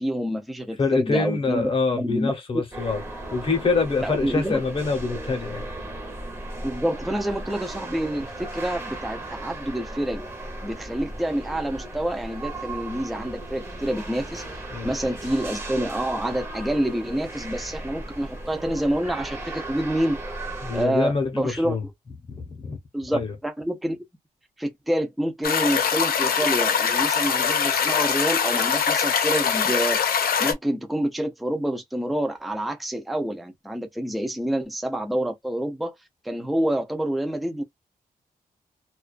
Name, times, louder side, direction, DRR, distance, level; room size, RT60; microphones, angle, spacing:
voice 1, 0.0-2.3 4.0-4.6 6.6-10.2 10.6-14.4 14.8-20.2 20.7-21.9 22.9-24.0 24.6-30.0 30.4-36.0 36.2-37.6, right 1 dB, ahead, 0.4 m, -27 dB
voice 2, 0.8-3.0 3.3-5.8 14.7-14.9 20.6-21.8 22.3-22.8 23.1-23.3, left 4 dB, 35° left, 0.8 m, -25 dB
sound 1, 2.7-20.9, right 2 dB, 15° right, 0.8 m, -36 dB
sound 2, 25.4-30.5, left 7 dB, 85° left, 0.6 m, -23 dB
2.3 x 2.2 x 2.4 m
wide cardioid pair, 170°, 15 cm